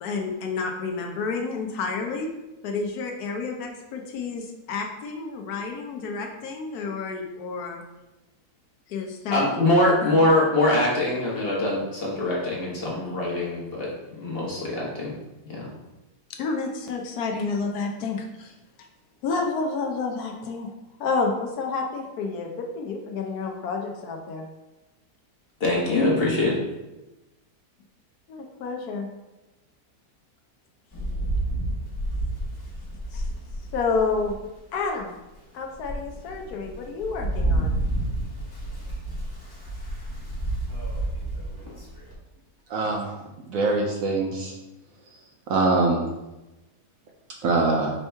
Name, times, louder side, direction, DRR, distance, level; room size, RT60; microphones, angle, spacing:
voice 1, 0.0-2.3 2.6-7.8 8.9-9.4 10.0-10.1 16.4-18.5 19.2-20.7 21.0-24.4 28.3-29.1 33.1-33.2 33.7-34.4 34.7-35.1 35.5-37.7, left 4 dB, 75° left, 2 dB, 1.1 m, -29 dB
voice 2, 9.3-13.9 14.2-15.1 15.5-15.7 25.6-26.6, left 1 dB, 40° left, -4 dB, 1.1 m, -23 dB
Rain, 30.9-34.4 35.0-35.1 35.6-42.1, right 1 dB, 20° left, 0.7 m, -30 dB
voice 3, 42.7-43.1 43.5-44.5 45.5-46.0 47.4-47.9, right 3 dB, 70° right, 0 dB, 0.9 m, -23 dB
5.3 x 2.9 x 3.3 m, 1.0 s
omnidirectional pair, 1.7 m